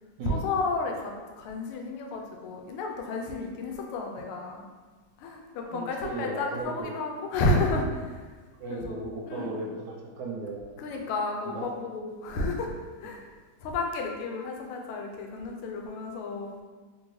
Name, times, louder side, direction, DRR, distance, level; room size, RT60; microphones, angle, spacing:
voice 1, 0.3-4.6 5.2-8.3 8.7-9.0 9.3-9.6 10.8-13.2 13.6-16.6, left 2 dB, 85° left, 1 dB, 1.5 m, -31 dB
voice 2, 5.7-6.9 8.6-11.0 11.5-11.7, right 3 dB, 85° right, -2 dB, 0.9 m, -36 dB
3.8 x 2.7 x 3.0 m, 1.4 s
omnidirectional pair, 2.4 m